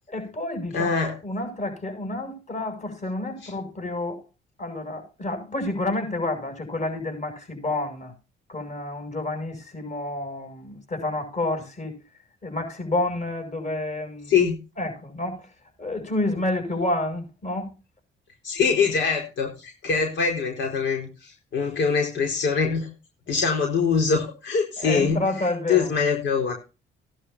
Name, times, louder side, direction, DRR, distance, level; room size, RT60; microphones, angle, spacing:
voice 1, 0.1-0.9 1.2-4.2 4.6-8.1 8.5-12.0 12.4-14.3 14.8-15.5 15.8-17.7 24.8-25.9, left 2 dB, 35° left, 7.7 m, -29 dB
voice 2, 0.7-1.1 14.3-14.6 18.4-22.9 23.3-25.2 25.7-26.5, left 5 dB, 70° left, 4.8 m, -23 dB
17.5 x 11.0 x 2.8 m
cardioid pair, 90°, 20 cm